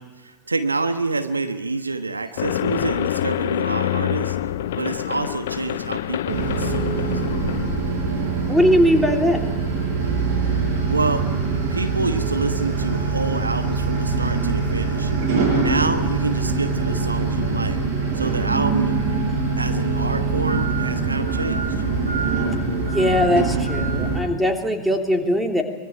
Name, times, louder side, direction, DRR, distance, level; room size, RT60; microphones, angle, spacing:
voice 1, 0.0-4.4 4.7-7.3 10.9-11.3 11.7-15.1 15.5-17.8 18.1-19.0 19.6-21.8, right 3 dB, 80° right, 8 dB, 1.3 m, -27 dB
sound 1, 2.4-8.4, left 12 dB, 55° left, 0.8 m, -26 dB
sound 2, 6.3-24.2, right 4 dB, 50° right, 7.1 m, -23 dB
voice 2, 8.5-9.4 22.8-25.6, left 1 dB, ahead, 3 dB, 3.1 m, -20 dB
24.5 x 21.5 x 9.1 m, 1.1 s
figure-of-eight pair, 90°, 0 cm